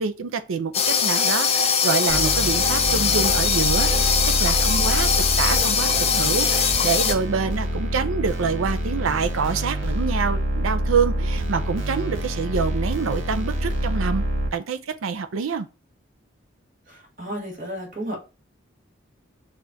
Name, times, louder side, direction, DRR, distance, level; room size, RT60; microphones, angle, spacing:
voice 1, 0.0-14.2 14.5-15.7, right 5 dB, 90° right, 0.5 m, -26 dB
sound 1, 0.7-7.1, left 6 dB, 30° left, 0.4 m, -21 dB
sound 2, 2.1-14.5, right 1 dB, 65° right, 1.0 m, -26 dB
voice 2, 16.9-18.2, equal, 45° right, 1.5 m, -33 dB
6.8 x 2.4 x 2.7 m
head